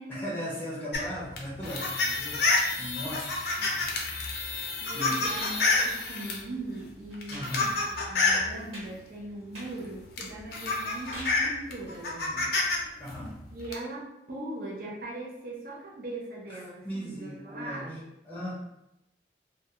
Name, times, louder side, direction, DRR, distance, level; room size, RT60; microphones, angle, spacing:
voice 1, 0.1-5.3 7.3-7.7 13.0-13.4 16.5-17.9 18.2-18.6, equal, 10° left, -6 dB, 0.6 m, -38 dB
sound 1, 0.9-6.4 7.1-8.5 9.7-9.8 10.2-12.8 13.1-13.7, left 3 dB, 60° left, 0.5 m, -28 dB
voice 2, 4.8-12.7 13.5-18.1, right 2 dB, 50° right, -4 dB, 0.5 m, -40 dB
sound 2, 5.0-6.2 6.5-7.6 8.0-8.1 8.5-8.9 9.4-9.8 10.6-11.5, right 1 dB, 35° right, 1.1 m, -44 dB
2.2 x 2.2 x 2.8 m, 0.84 s
head